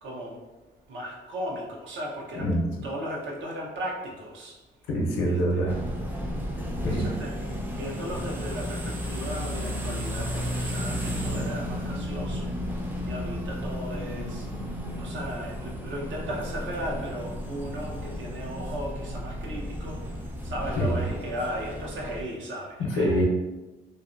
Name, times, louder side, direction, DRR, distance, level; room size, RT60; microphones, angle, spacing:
voice 1, 0.0-0.4 0.9-2.5 2.8-4.5 5.2-5.8 6.8-7.3 7.7-12.5 13.1-14.5 15.0-20.0 20.4-23.2, equal, 75° right, -2 dB, 0.7 m, -36 dB
voice 2, 4.9-5.7 6.8-7.1 20.8-21.0 22.8-23.2, equal, 90° left, -1 dB, 0.6 m, -25 dB
sound 1, 5.7-22.2, equal, 10° right, 0.4 m, -33 dB
2.5 x 2.1 x 2.5 m, 1.1 s
cardioid pair, 90°, 20 cm